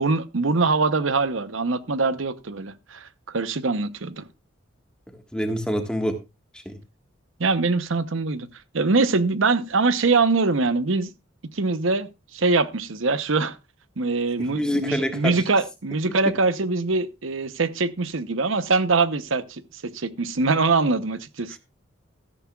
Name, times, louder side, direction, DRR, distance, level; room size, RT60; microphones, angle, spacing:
voice 1, 0.0-4.3 7.4-8.5 8.7-11.1 11.5-13.6 14.0-21.6, right 3 dB, 75° right, 0.9 m, -23 dB
voice 2, 5.3-6.2 6.6-6.8 14.4-15.4, equal, 5° left, 1.5 m, -26 dB
14.0 x 13.0 x 2.4 m
head